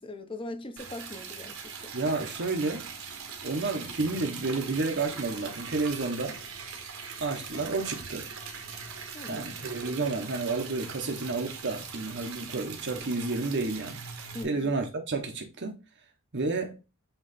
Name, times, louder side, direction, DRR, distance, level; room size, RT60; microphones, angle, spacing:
voice 1, 0.0-1.9 9.1-9.5 14.3-14.7, left 2 dB, 25° left, 0.9 m, -41 dB
Liquid, 0.8-14.4, right 5 dB, 80° right, 1.6 m, -41 dB
voice 2, 1.9-2.9 3.4-6.4 7.2-8.3 9.3-14.0 14.4-15.8 16.3-16.8, right 3 dB, 55° right, 1.0 m, -31 dB
7.9 x 3.2 x 4.1 m
head